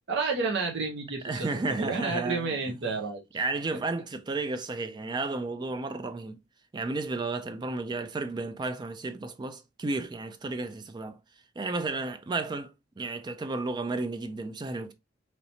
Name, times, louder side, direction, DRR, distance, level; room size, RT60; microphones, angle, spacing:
voice 1, 0.1-1.5 1.8-3.2, right 4 dB, 60° right, 0.7 m, -30 dB
voice 2, 1.2-2.8 3.3-6.4 6.7-11.2 11.6-14.9, right 3 dB, 20° right, 0.3 m, -33 dB
3.1 x 2.9 x 2.7 m
head